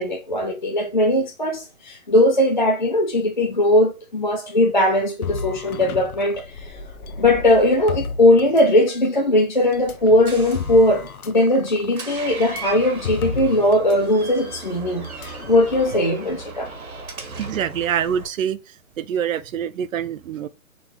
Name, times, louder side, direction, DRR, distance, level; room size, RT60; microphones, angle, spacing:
voice 1, 0.0-6.7 7.2-16.7, left 1 dB, 35° left, 0.4 m, -19 dB
sound 1, 5.2-9.1 9.7-14.0 14.2-14.4 15.0-15.9, left 5 dB, 90° left, 0.7 m, -34 dB
Door, 9.6-18.3, right 3 dB, 90° right, 1.5 m, -37 dB
voice 2, 17.4-18.6 19.0-20.5, right 9 dB, 70° right, 0.5 m, -25 dB
3.8 x 2.8 x 3.4 m
hypercardioid pair, 170°, 42 cm